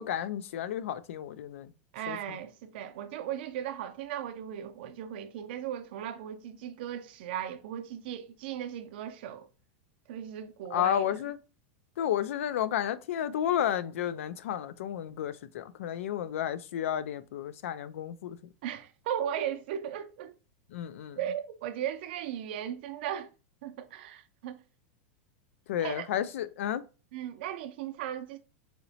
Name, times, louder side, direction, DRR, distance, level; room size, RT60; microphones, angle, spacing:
voice 1, 0.0-1.7 2.1-2.4 10.7-11.4 12.0-18.4 20.7-21.2 25.7-26.8, left 10 dB, 80° left, 0.4 m, -32 dB
voice 2, 1.9-9.5 10.1-11.2 18.6-20.3 21.2-23.3 23.6-24.6 25.8-26.1 27.1-28.4, right 10 dB, 50° right, 0.5 m, -37 dB
4.2 x 2.9 x 2.7 m
supercardioid pair, 180°, 7 cm